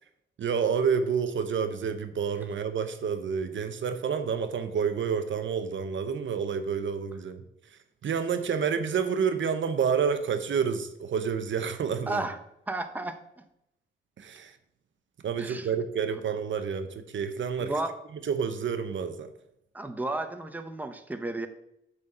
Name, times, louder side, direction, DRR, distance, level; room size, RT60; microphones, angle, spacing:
voice 1, 0.4-7.4 7.7-12.3 14.2-14.6 15.2-17.7 18.2-19.3, right 6 dB, 70° right, 10 dB, 0.7 m, -29 dB
voice 2, 12.1-12.4 12.7-13.2 15.4-15.7 17.6-17.9 19.7-21.5, right 2 dB, 10° right, 7 dB, 0.7 m, -32 dB
7.0 x 4.2 x 6.6 m, 0.80 s
cardioid pair, 90°, 20 cm